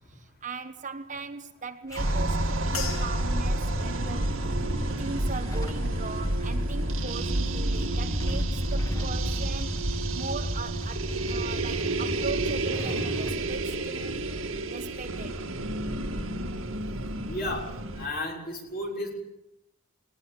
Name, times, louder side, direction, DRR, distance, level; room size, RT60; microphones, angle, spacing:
voice 1, 0.1-4.4 5.0-14.4 14.7-15.4 16.5-16.7, right 4 dB, 35° right, 1.3 m, -39 dB
Motorcycle / Engine starting / Idling, 1.9-13.3, equal, 15° left, 1.9 m, -37 dB
sound 1, 2.0-18.1, right 1 dB, 70° right, 2.1 m, -30 dB
sound 2, 2.7-7.3 7.6-8.2 8.8-9.1, left 5 dB, 90° left, 4.4 m, -44 dB
voice 2, 17.3-17.6 18.0-19.1, left 1 dB, 45° left, 6.3 m, -33 dB
21.0 x 18.5 x 8.9 m
head